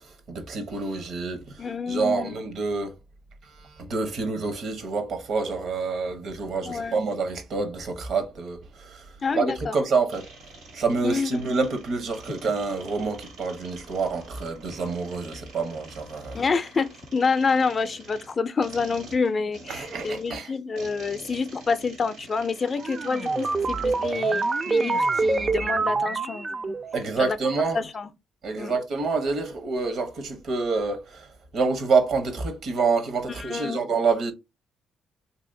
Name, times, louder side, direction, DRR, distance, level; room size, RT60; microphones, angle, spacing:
voice 1, 0.3-1.6 1.9-2.9 3.8-9.0 9.4-10.3 10.7-16.4 19.7-20.5 26.9-27.8 28.4-31.3 31.5-34.3, right 4 dB, 65° right, 0.9 m, -27 dB
voice 2, 1.6-2.4 6.7-7.0 9.2-9.8 11.0-11.4 16.3-26.8 27.2-27.4 27.7-28.1 28.6-28.7 33.3-33.8, left 4 dB, 40° left, 0.4 m, -28 dB
sound 1, 10.1-25.5, right 3 dB, 85° right, 1.7 m, -47 dB
sound 2, 22.8-27.0, right 3 dB, 35° right, 0.3 m, -25 dB
3.1 x 2.8 x 2.6 m
cardioid pair, 90°, 0 cm